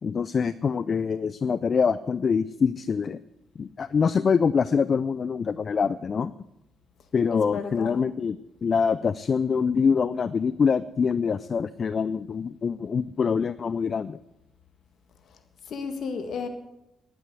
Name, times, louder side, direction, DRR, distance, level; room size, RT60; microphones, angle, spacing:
voice 1, 0.0-3.2 3.6-6.3 7.1-14.2, left 6 dB, 50° left, 16 dB, 0.4 m, -25 dB
voice 2, 7.3-8.0 15.7-16.5, left 5 dB, 65° left, 8 dB, 1.7 m, -33 dB
11.0 x 9.2 x 8.2 m, 0.87 s
supercardioid pair, 60°, 0 cm